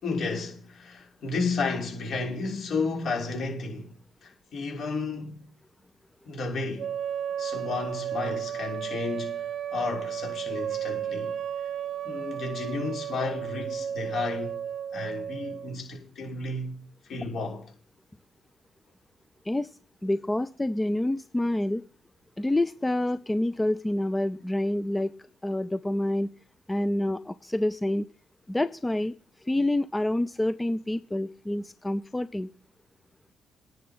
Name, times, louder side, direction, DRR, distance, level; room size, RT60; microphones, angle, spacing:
voice 1, 0.0-3.9 4.2-5.5 6.2-6.9 7.4-9.5 9.7-11.4 12.0-14.6 14.9-16.8 17.0-17.7, left 3 dB, 60° left, 6.4 m, -32 dB
sound 1, 6.8-15.7, right 9 dB, 60° right, 0.8 m, -33 dB
voice 2, 20.0-21.8 22.4-25.2 25.4-26.3 26.7-28.1 28.5-29.1 29.4-32.5, left 1 dB, 15° left, 0.6 m, -27 dB
10.5 x 7.6 x 9.8 m
cardioid pair, 90°, 0 cm